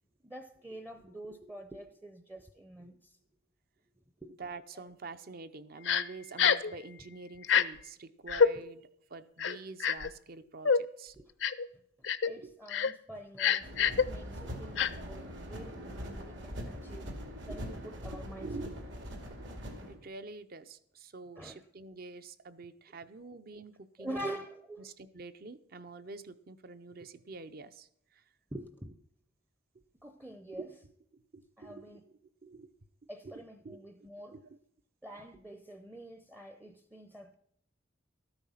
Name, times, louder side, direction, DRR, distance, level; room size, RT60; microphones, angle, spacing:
voice 1, 0.2-3.1 4.2-4.3 4.7-4.8 8.6-8.7 11.2-11.3 12.2-17.1 17.5-18.5 21.4-21.6 22.9-23.0 24.0-24.9 28.5-29.0 30.0-30.7 31.6-32.0 33.1-34.4 35.0-37.4, right 1 dB, 10° right, 8 dB, 0.6 m, -46 dB
voice 2, 4.4-11.2 12.4-12.6 17.5-17.6 18.1-18.8 19.4-19.5 19.9-24.3 24.8-28.2 30.5-30.7 31.1-32.7 33.2-34.6, right 3 dB, 50° right, 12 dB, 0.7 m, -47 dB
Crying sobbing, 5.9-6.0 6.4-6.7 7.4-7.6 8.3-8.5 9.4-10.1 10.6-10.8 11.4-11.7 12.0-12.3 12.7-12.9 13.4-14.0 14.8-14.9, left 7 dB, 65° left, 0.5 m, -26 dB
sound 1, 13.6-19.9, equal, 70° right, 2.4 m, -42 dB
13.0 x 8.9 x 5.6 m, 0.71 s
head